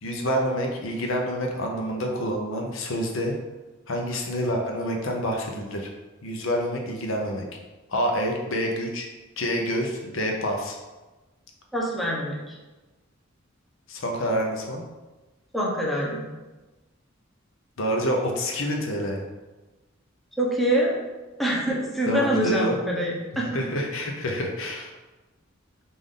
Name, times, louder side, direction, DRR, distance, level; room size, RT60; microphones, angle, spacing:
voice 1, 0.0-3.3 3.9-5.9 6.2-7.5 7.9-9.1 9.4-10.8 13.9-14.8 17.8-19.2 22.1-22.8 23.3-24.9, equal, 70° left, 1 dB, 0.7 m, -27 dB
voice 2, 11.7-12.6 15.5-16.2 20.4-20.9 21.4-23.6, right 1 dB, ahead, -4 dB, 0.8 m, -25 dB
5.2 x 2.6 x 3.6 m, 1.2 s
head